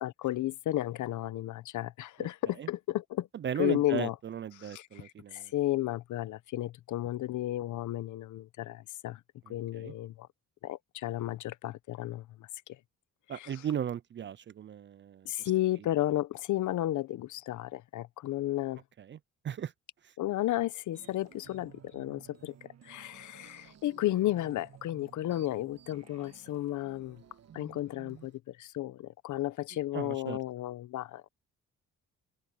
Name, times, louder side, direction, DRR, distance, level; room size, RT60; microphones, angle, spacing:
voice 1, 0.0-3.3 3.6-4.1 4.6-5.0 5.3-9.2 9.5-10.3 10.6-12.5 13.3-13.5 15.2-18.8 20.2-22.5 22.8-27.2 27.5-31.3, left 14 dB, 75° left, 1.0 m, -33 dB
voice 2, 3.3-5.5 9.5-9.9 13.3-15.5 19.0-19.2 19.4-19.7 20.0-20.1 29.9-30.4, right 9 dB, 40° right, 0.5 m, -37 dB
sound 1, 20.9-28.4, right 10 dB, 55° right, 1.5 m, -55 dB
cardioid pair, 90°, 30 cm